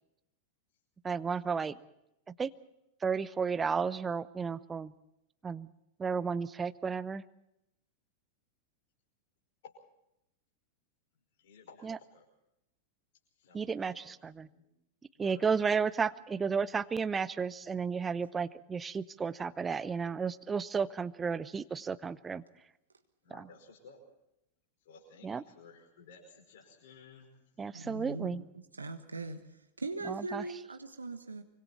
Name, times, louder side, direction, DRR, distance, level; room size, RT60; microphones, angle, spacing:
voice 1, 1.0-1.8 2.4-2.5 3.0-4.9 5.4-5.7 6.0-7.2 11.8-12.0 13.5-14.5 15.2-22.4 25.2-25.4 27.6-28.4 30.1-30.4, right 5 dB, 15° right, 15 dB, 0.8 m, -33 dB
voice 2, 11.4-12.3 13.4-14.7 15.1-15.5 23.2-24.0 24.8-27.3 27.8-28.1, left 4 dB, 55° left, 0 dB, 5.3 m, -56 dB
voice 3, 27.7-28.4 28.7-29.4 29.8-31.4, right 3 dB, 80° right, 7 dB, 1.4 m, -40 dB
25.5 x 25.0 x 4.4 m, 0.85 s
figure-of-eight pair, 90°, 0 cm